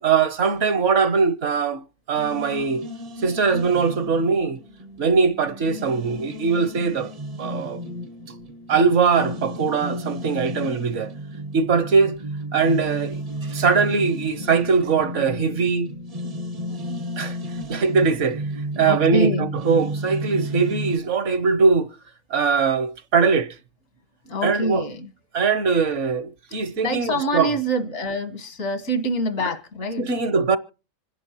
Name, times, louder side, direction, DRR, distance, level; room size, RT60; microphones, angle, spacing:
voice 1, 0.0-1.8 2.1-2.8 3.2-4.6 5.0-7.1 7.4-7.8 8.7-11.1 11.5-12.2 12.5-15.9 17.2-17.4 17.7-18.4 18.8-21.9 22.3-23.5 24.4-24.8 25.3-27.5 30.0-30.6, right 5 dB, 65° right, 1.2 m, -21 dB
sound 1, 2.1-21.0, equal, 40° right, 0.6 m, -33 dB
voice 2, 18.8-19.5 24.2-25.1 26.8-30.1, equal, 80° left, 1.9 m, -25 dB
26.5 x 10.5 x 2.9 m
omnidirectional pair, 1.4 m